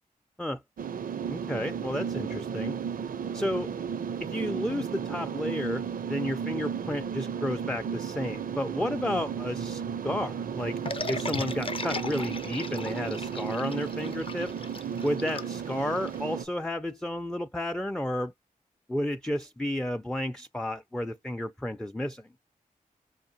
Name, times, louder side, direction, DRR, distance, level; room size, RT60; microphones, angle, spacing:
sound 1, 0.8-16.4, right 7 dB, 75° right, 0.5 m, -34 dB
voice 1, 1.3-2.7 3.3-3.7 4.2-10.8 11.1-14.5 15.0-18.3 18.9-22.3, left 1 dB, 5° left, 0.4 m, -32 dB
sound 2, 10.9-16.2, left 3 dB, 40° left, 0.7 m, -37 dB
4.6 x 2.5 x 2.7 m
cardioid pair, 50°, 15 cm